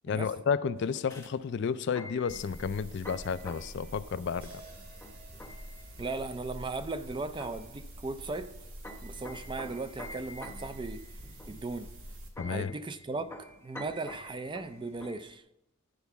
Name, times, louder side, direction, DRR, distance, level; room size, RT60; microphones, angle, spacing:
voice 1, 0.0-4.5 12.4-12.7, left 6 dB, 55° left, 14 dB, 0.3 m, -31 dB
sound 1, 0.8-15.4, left 1 dB, 10° left, 0.7 m, -49 dB
sound 2, 2.3-12.3, equal, 65° right, 1.8 m, -47 dB
sound 3, 4.4-8.7, right 2 dB, 50° right, 2.6 m, -58 dB
voice 2, 6.0-8.5 9.0-11.9 12.5-15.4, right 3 dB, 20° right, 11 dB, 0.3 m, -37 dB
10.0 x 4.5 x 6.9 m, 0.88 s
head